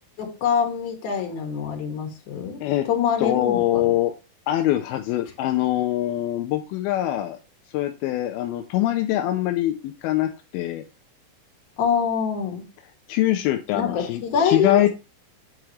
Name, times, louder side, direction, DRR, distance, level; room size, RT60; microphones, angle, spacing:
voice 1, 0.2-2.6 2.9-3.8 11.8-12.6 13.7-14.9, left 7 dB, 60° left, 2 dB, 3.0 m, -24 dB
voice 2, 3.2-4.1 4.5-7.4 7.7-10.8 13.1-14.9, left 13 dB, 85° left, 6 dB, 2.5 m, -23 dB
9.1 x 4.7 x 3.2 m, 0.29 s
omnidirectional pair, 4.4 m